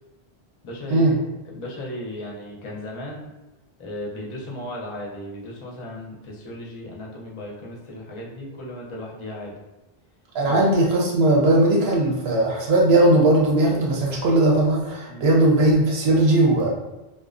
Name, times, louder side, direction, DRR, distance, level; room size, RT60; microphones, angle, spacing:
voice 1, 0.6-1.1 1.4-3.3 3.8-9.5 10.4-10.7 15.1-15.3, left 1 dB, 40° left, -3 dB, 0.4 m, -36 dB
voice 2, 10.3-16.7, right 1 dB, 75° right, -2 dB, 0.9 m, -18 dB
2.4 x 2.1 x 2.4 m, 1.0 s
omnidirectional pair, 1.1 m